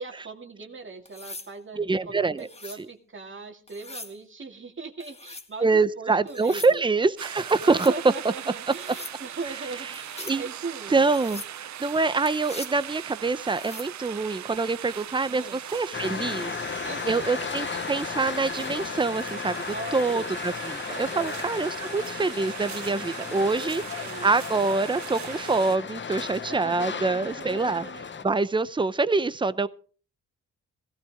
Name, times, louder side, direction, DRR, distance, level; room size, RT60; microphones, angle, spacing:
voice 1, 0.0-6.9 7.6-11.1 15.3-15.6 16.8-17.3 19.7-20.3 20.9-21.4 22.9-23.7 24.0-24.3 26.5-28.1, right 3 dB, 40° right, 4 dB, 2.4 m, -39 dB
sound 1, 1.1-1.5 2.4-2.8 3.7-4.2 5.0-5.5 6.3-6.8 7.5-8.0 8.7-9.2 9.9-10.4 11.1-11.5 12.3-12.8 13.4-13.9 15.9-16.1, left 2 dB, 20° left, 1.8 m, -42 dB
voice 2, 1.8-2.5 5.6-7.9 10.2-10.4 10.9-19.6 19.9-27.8 28.2-29.7, right 3 dB, 15° right, 14 dB, 0.7 m, -25 dB
sound 2, 7.2-25.8, right 11 dB, 65° right, 0.6 m, -40 dB
sound 3, 15.9-28.2, left 6 dB, 35° left, 0.8 m, -35 dB
17.5 x 16.0 x 3.6 m, 0.40 s
cardioid pair, 110°, 31 cm